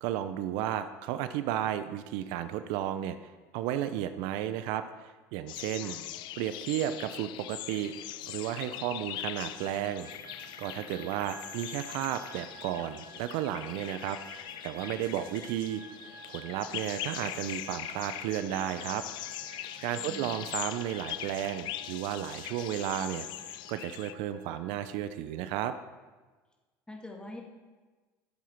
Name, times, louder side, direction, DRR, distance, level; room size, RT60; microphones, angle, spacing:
voice 1, 0.0-3.2 3.5-6.0 6.4-7.9 8.3-10.1 10.6-14.2 14.6-15.8 16.3-19.0 19.8-23.3 23.7-25.7, right 11 dB, 70° right, 11 dB, 0.6 m, -33 dB
sound 1, 5.5-24.1, left 14 dB, 60° left, 0.5 m, -41 dB
sound 2, 9.4-25.0, right 4 dB, 50° right, 2.2 m, -52 dB
voice 2, 20.0-20.3 26.9-27.4, left 1 dB, 10° left, 1 dB, 2.1 m, -44 dB
12.0 x 7.4 x 4.5 m, 1.3 s
hypercardioid pair, 85°, 9 cm